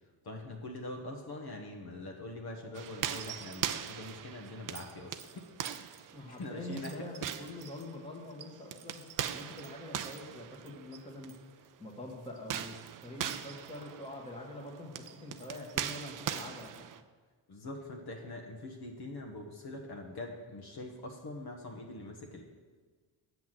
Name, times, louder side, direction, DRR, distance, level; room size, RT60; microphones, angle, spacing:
voice 1, 0.2-5.4 6.3-6.9 17.5-22.4, left 2 dB, 50° left, 0 dB, 1.3 m, -43 dB
sound 1, 2.8-11.4 12.4-17.0, right 9 dB, 45° right, 0.5 m, -40 dB
voice 2, 6.1-9.0 9.3-16.8, left 1 dB, 10° left, -1 dB, 1.5 m, -45 dB
8.0 x 5.9 x 7.6 m, 1.5 s
cardioid pair, 120°, 49 cm